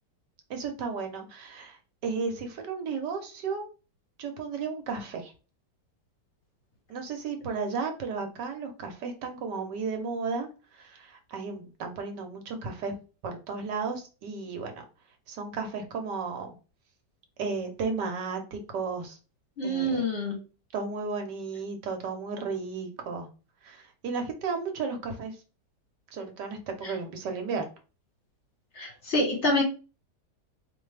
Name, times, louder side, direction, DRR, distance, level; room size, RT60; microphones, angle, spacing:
voice 1, 0.5-3.6 4.2-5.3 6.9-10.5 10.8-12.9 13.2-14.7 15.3-16.5 17.4-19.2 19.6-20.0 20.7-23.3 23.6-25.4 26.1-27.6, right 4 dB, 75° right, 5 dB, 1.5 m, -34 dB
voice 2, 19.6-20.4 26.8-26.9 28.8-29.6, left 1 dB, 45° left, 0 dB, 1.2 m, -27 dB
4.2 x 3.1 x 3.3 m, 0.33 s
omnidirectional pair, 1.8 m